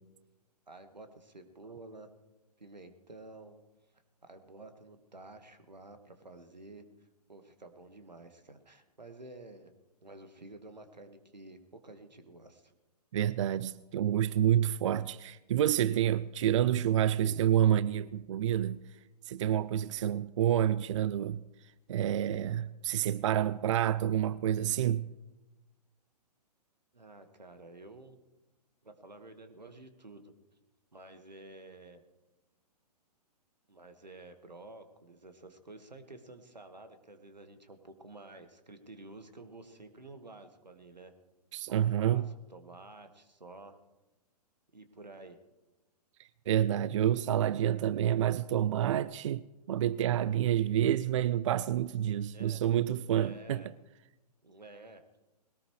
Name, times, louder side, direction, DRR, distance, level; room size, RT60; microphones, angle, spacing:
voice 1, 0.7-2.1 2.6-3.6 4.2-9.7 10.0-12.7 26.9-28.2 28.8-30.3 30.9-32.0 33.7-41.1 41.7-42.2 42.5-43.8 44.7-45.4 52.3-52.6 53.1-53.7 54.4-55.0, right 2 dB, 85° right, 1.7 m, -51 dB
voice 2, 13.1-18.8 19.3-21.4 21.9-25.1 41.5-42.2 46.5-53.6, right 11 dB, 50° right, 0.4 m, -28 dB
21.0 x 18.0 x 3.2 m
figure-of-eight pair, 125°, 21 cm